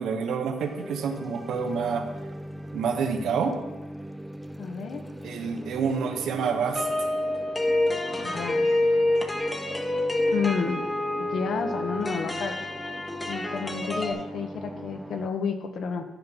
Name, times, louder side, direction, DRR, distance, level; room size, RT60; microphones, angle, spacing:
voice 1, 0.0-2.1 2.7-3.5 5.2-6.9, right 6 dB, 75° right, 5 dB, 0.9 m, -28 dB
sound 1, 0.6-15.3, right 1 dB, 10° right, 0.4 m, -40 dB
voice 2, 4.6-5.0 8.2-8.6 10.3-10.8 11.2-12.5 13.3-16.0, left 5 dB, 65° left, 7 dB, 0.9 m, -30 dB
sound 2, 6.8-14.1, left 1 dB, 15° left, 1.0 m, -27 dB
10.5 x 4.0 x 5.9 m, 1.1 s
cardioid pair, 90°, 0 cm